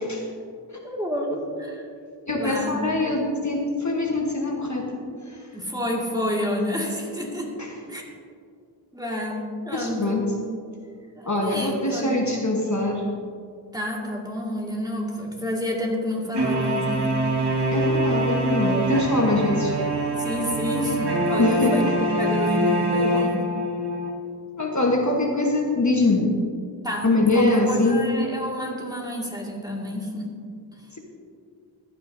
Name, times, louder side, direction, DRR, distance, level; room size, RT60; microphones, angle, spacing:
voice 1, 0.8-1.9 2.3-2.8 5.5-7.5 7.8-8.0 8.9-10.3 11.2-12.2 13.7-17.3 20.1-23.5 26.8-30.4, equal, 10° right, -2 dB, 2.1 m, -29 dB
voice 2, 2.3-5.0 5.3-5.4 7.6-7.7 9.7-10.3 11.3-13.1 17.7-19.8 21.4-21.8 24.6-26.3 27.0-28.0, left 2 dB, 40° left, 0 dB, 1.3 m, -23 dB
sound 1, 16.3-24.1, right 1 dB, 65° right, 1.5 m, -24 dB
15.0 x 10.5 x 2.7 m, 2.3 s
wide cardioid pair, 55°, 44 cm